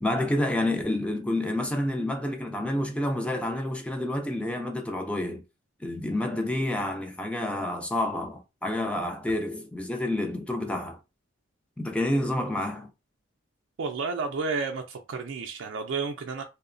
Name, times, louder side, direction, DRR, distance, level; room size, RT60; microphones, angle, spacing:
voice 1, 0.0-5.4 5.8-11.0 11.8-12.9, left 1 dB, 5° left, 0.4 m, -29 dB
voice 2, 13.8-16.4, right 4 dB, 80° right, 0.4 m, -31 dB
2.7 x 2.0 x 2.5 m
head